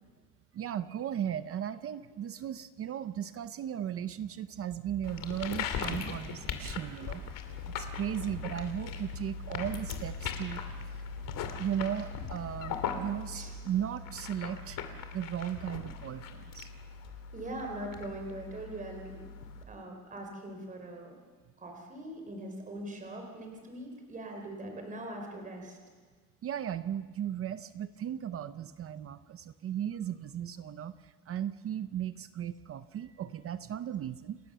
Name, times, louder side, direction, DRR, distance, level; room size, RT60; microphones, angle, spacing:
voice 1, 0.5-7.2 7.8-10.6 11.6-14.8 15.1-16.7 26.4-34.4, right 10 dB, 40° right, 13 dB, 0.7 m, -36 dB
sound 1, 5.0-19.6, left 6 dB, 70° left, 2.7 m, -39 dB
voice 2, 17.3-19.3 19.7-21.2 21.6-25.8, right 1 dB, 25° right, 3 dB, 4.0 m, -41 dB
28.5 x 18.5 x 6.8 m, 1.5 s
cardioid pair, 175°, 34 cm